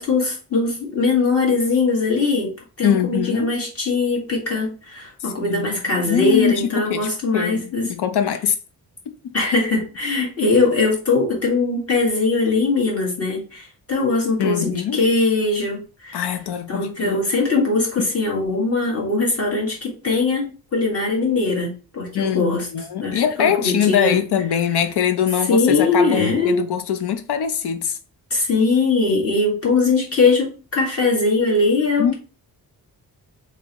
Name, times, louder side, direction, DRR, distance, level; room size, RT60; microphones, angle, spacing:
voice 1, 0.0-2.5 2.8-7.9 9.3-16.3 16.7-22.7 23.0-24.2 25.5-26.6 28.3-32.1, left 3 dB, 35° left, 1.8 m, -21 dB
voice 2, 2.8-3.5 5.4-5.7 6.1-7.5 7.8-8.6 9.2-9.3 14.4-15.0 16.1-17.2 22.1-28.0 32.0-32.1, left 8 dB, 85° left, 0.7 m, -22 dB
3.7 x 3.2 x 2.9 m
cardioid pair, 110°, 39 cm